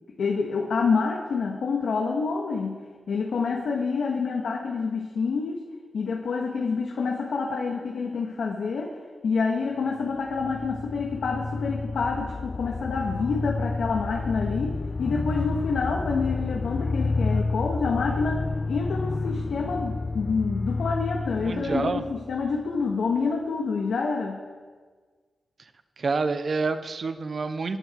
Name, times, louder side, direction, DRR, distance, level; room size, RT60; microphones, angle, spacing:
voice 1, 0.2-5.6 5.9-9.0 9.2-24.4, left 4 dB, 90° left, -1 dB, 1.9 m, -27 dB
sound 1, 10.0-22.8, left 3 dB, 35° left, 0.4 m, -30 dB
voice 2, 21.4-22.0 26.0-27.8, right 4 dB, 45° right, 10 dB, 0.9 m, -27 dB
26.0 x 11.0 x 4.7 m, 1.5 s
wide cardioid pair, 175°, 0 cm